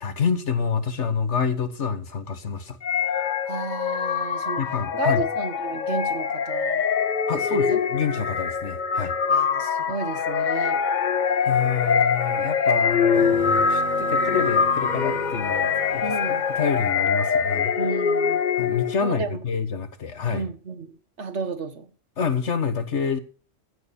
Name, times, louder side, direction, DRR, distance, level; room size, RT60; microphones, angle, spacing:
voice 1, 0.0-2.8 4.6-5.2 7.3-9.2 11.4-17.8 18.6-20.5 22.2-23.2, left 6 dB, 75° left, 1.6 m, -28 dB
sound 1, 2.8-19.0, left 6 dB, 45° left, 0.9 m, -24 dB
voice 2, 3.5-4.6 4.9-6.8 7.3-7.8 9.3-10.8 16.0-16.4 17.8-18.4 19.0-19.4 20.3-21.9, right 4 dB, 70° right, 1.8 m, -32 dB
sound 2, 13.1-17.4, right 5 dB, 45° right, 2.0 m, -38 dB
15.0 x 6.8 x 6.9 m
omnidirectional pair, 1.2 m